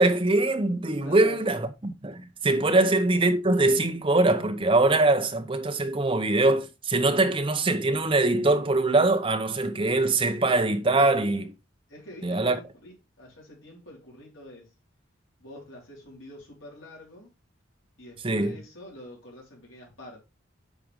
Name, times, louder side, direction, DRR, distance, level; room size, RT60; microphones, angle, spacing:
voice 1, 0.0-11.5 12.2-12.6 18.2-18.5, right 2 dB, 25° right, 0.7 m, -23 dB
voice 2, 1.0-1.6 2.7-2.9 11.9-14.7 15.4-17.3 18.0-20.2, left 1 dB, 80° left, 4.0 m, -46 dB
8.2 x 5.1 x 3.5 m
head